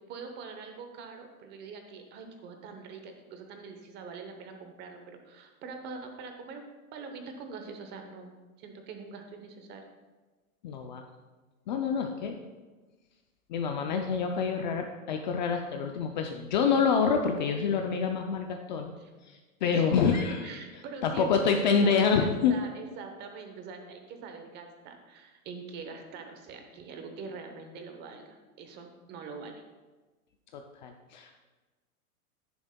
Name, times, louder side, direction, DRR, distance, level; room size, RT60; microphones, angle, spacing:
voice 1, 0.1-6.6 6.9-8.3 8.6-9.8 19.0-19.1 19.7-29.6, right 4 dB, 25° right, 5 dB, 0.9 m, -43 dB
voice 2, 10.6-11.0 11.7-12.4 13.5-18.9 19.3-20.5 21.0-22.5 30.5-31.3, left 6 dB, 35° left, 4 dB, 0.4 m, -27 dB
10.5 x 9.9 x 2.2 m, 1.3 s
hypercardioid pair, 145°, 44 cm